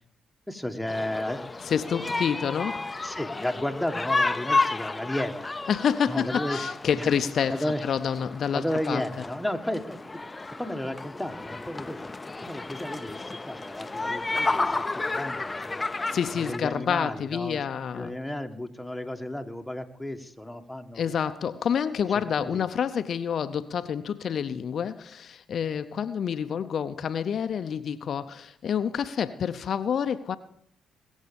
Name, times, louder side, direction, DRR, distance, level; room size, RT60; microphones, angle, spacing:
voice 1, 0.5-1.5 3.0-5.5 6.1-6.6 7.0-7.1 7.5-7.9 8.5-10.0 10.6-12.0 12.4-15.9 16.3-17.6 17.9-21.3 22.4-22.6, left 1 dB, 5° left, 1.7 m, -33 dB
sound 1, 0.9-16.6, left 3 dB, 25° left, 0.7 m, -32 dB
voice 2, 1.7-3.2 5.7-7.5 7.8-9.0 16.1-18.2 20.9-30.4, left 7 dB, 60° left, 0.6 m, -28 dB
20.0 x 7.3 x 7.0 m
supercardioid pair, 60°, 0 cm